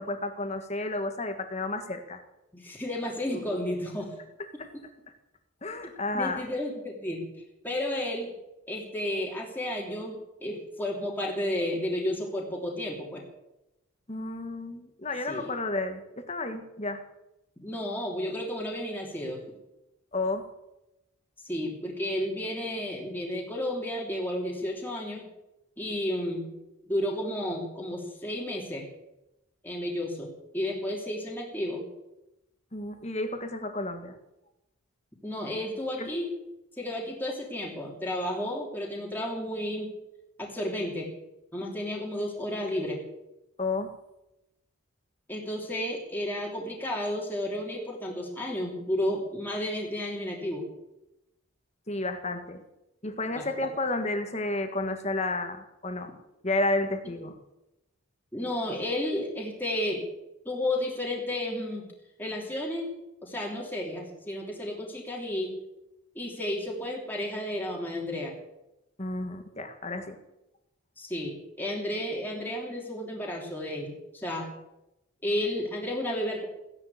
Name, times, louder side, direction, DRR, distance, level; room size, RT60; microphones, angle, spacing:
voice 1, 0.0-2.2 3.3-3.6 5.6-6.4 14.1-17.0 20.1-20.4 32.7-34.1 36.0-36.1 43.6-43.9 51.9-52.6 53.0-56.1 56.4-57.4 69.0-70.2, left 2 dB, 30° left, 7 dB, 1.8 m, -31 dB
voice 2, 2.5-4.2 6.1-7.3 7.6-8.3 8.7-10.2 10.4-13.2 15.3-15.5 17.6-19.4 21.4-25.3 25.8-26.4 26.9-28.8 29.6-31.8 35.2-36.3 36.8-39.9 40.4-41.1 41.5-43.0 45.3-50.7 53.3-53.5 57.0-57.2 58.3-60.1 60.4-61.9 62.2-62.9 63.2-65.5 66.1-68.4 71.0-74.5 75.2-76.5, left 1 dB, 10° left, -2 dB, 3.1 m, -32 dB
16.0 x 10.5 x 8.4 m, 0.91 s
head